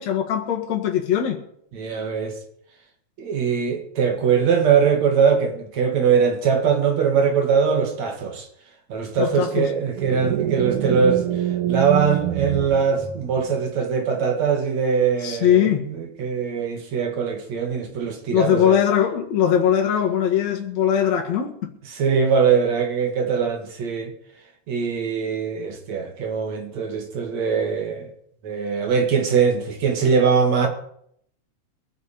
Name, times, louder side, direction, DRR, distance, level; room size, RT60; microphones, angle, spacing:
voice 1, 0.0-1.4 9.2-9.7 15.2-15.8 18.3-21.7, left 9 dB, 65° left, 3.0 m, -20 dB
voice 2, 1.7-2.4 3.2-8.5 8.9-11.2 11.7-18.8 21.9-24.1 24.7-28.1 28.4-30.7, right 6 dB, 65° right, 3.4 m, -21 dB
sound 1, 10.0-13.6, right 11 dB, 85° right, 2.7 m, -26 dB
23.0 x 8.7 x 5.2 m
omnidirectional pair, 3.4 m